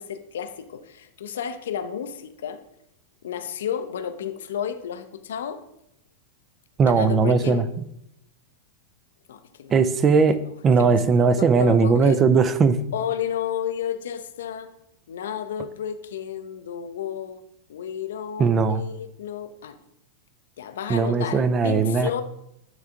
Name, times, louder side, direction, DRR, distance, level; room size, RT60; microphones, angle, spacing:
voice 1, 0.0-2.6 3.2-5.6 6.9-7.7 9.3-9.8 10.3-11.1 11.4-12.2 12.9-14.7 15.1-17.4 17.7-19.8 20.6-22.2, left 8 dB, 60° left, 10 dB, 0.5 m, -32 dB
voice 2, 6.8-7.6 9.7-10.4 10.6-12.8 18.4-18.8 20.9-22.1, right 5 dB, 25° right, 12 dB, 0.4 m, -19 dB
9.1 x 3.4 x 3.6 m, 0.79 s
figure-of-eight pair, 90°, 0 cm